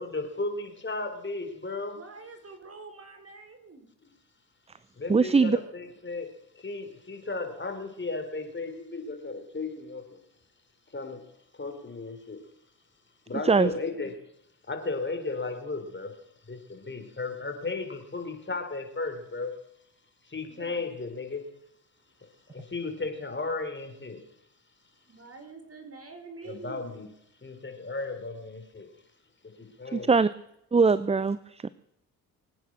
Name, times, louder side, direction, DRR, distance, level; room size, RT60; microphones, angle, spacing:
voice 1, 0.0-2.0 5.0-10.2 10.9-11.2 11.5-12.4 13.3-14.2 14.7-16.2 16.5-19.5 20.2-21.5 22.5-24.2 26.5-27.0 27.4-28.9 29.4-30.1, left 3 dB, 30° left, 6 dB, 4.3 m, -35 dB
voice 2, 1.9-3.9 20.5-21.1 22.0-22.7 25.0-26.8, right 3 dB, 35° right, 6 dB, 4.7 m, -47 dB
voice 3, 5.1-5.6 13.4-13.7 29.9-30.3 30.7-31.7, right 4 dB, 15° right, 17 dB, 0.6 m, -22 dB
23.5 x 9.2 x 6.4 m, 0.79 s
hypercardioid pair, 55°, 40 cm